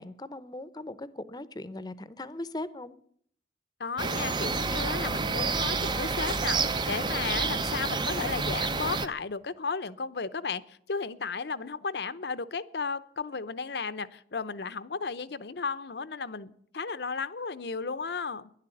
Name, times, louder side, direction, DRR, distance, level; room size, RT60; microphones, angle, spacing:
voice 1, 0.0-2.9 7.4-7.6, left 1 dB, 20° left, 15 dB, 0.7 m, -39 dB
voice 2, 3.8-18.5, left 4 dB, 70° left, 15 dB, 0.7 m, -34 dB
sound 1, 4.0-9.1, right 4 dB, 25° right, 0.6 m, -29 dB
12.0 x 11.0 x 9.8 m, 0.66 s
head